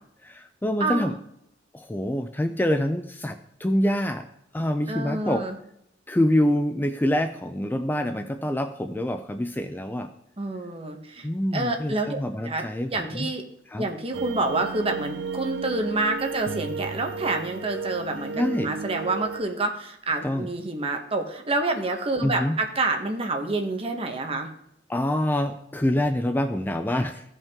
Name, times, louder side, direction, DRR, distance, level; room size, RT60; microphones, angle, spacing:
voice 1, 0.2-1.2 1.7-4.3 4.5-5.5 6.1-10.1 11.2-13.3 13.7-13.9 18.3-18.7 20.2-20.5 22.2-22.5 24.9-27.3, left 1 dB, 10° left, 8 dB, 0.4 m, -26 dB
voice 2, 0.8-1.1 4.9-5.6 10.4-11.3 11.5-12.6 12.9-13.4 13.8-24.5, right 2 dB, 30° right, 4 dB, 1.1 m, -28 dB
sound 1, 14.1-19.4, right 5 dB, 80° right, 0.5 m, -33 dB
14.5 x 5.4 x 3.6 m, 0.76 s
head